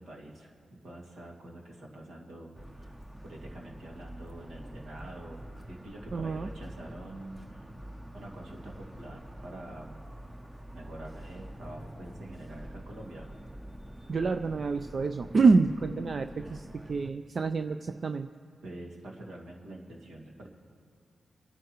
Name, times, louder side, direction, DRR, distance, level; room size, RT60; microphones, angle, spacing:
voice 1, 0.0-3.0 3.2-7.6 8.1-10.0 10.7-13.3 18.6-20.5, right 1 dB, 75° right, -2 dB, 2.2 m, -46 dB
Motor vehicle (road) / Siren, 2.6-17.1, right 1 dB, 15° right, 0.9 m, -46 dB
voice 2, 6.1-6.5 14.1-18.3, right 4 dB, 55° right, 8 dB, 0.4 m, -27 dB
28.0 x 10.0 x 3.1 m, 2.3 s
supercardioid pair, 40°, 0 cm